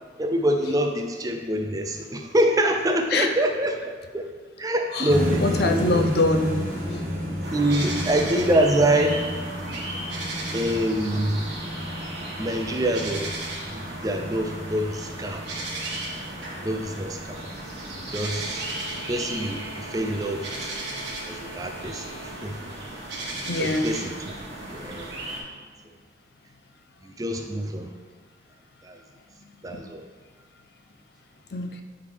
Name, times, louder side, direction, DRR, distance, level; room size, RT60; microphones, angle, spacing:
voice 1, 0.2-3.8 4.1-4.3 4.6-6.1 7.5-9.2 10.5-11.5 12.4-13.3 13.7-15.4 16.6-17.5 18.1-18.7 19.1-20.7 21.3-22.1 22.4-22.8 23.6-24.3 24.7-25.1 27.0-27.9 28.8-29.0 29.6-30.0, right 1 dB, 20° right, 4 dB, 0.4 m, -25 dB
sound 1, 5.1-19.1, equal, 50° right, 1.1 m, -33 dB
voice 2, 5.4-7.1 23.5-23.9 29.7-29.8 31.5-31.8, left 2 dB, 60° left, 6 dB, 0.5 m, -24 dB
sound 2, 7.4-25.4, right 2 dB, 75° right, 1.5 m, -35 dB
9.3 x 3.4 x 3.4 m, 1.5 s
head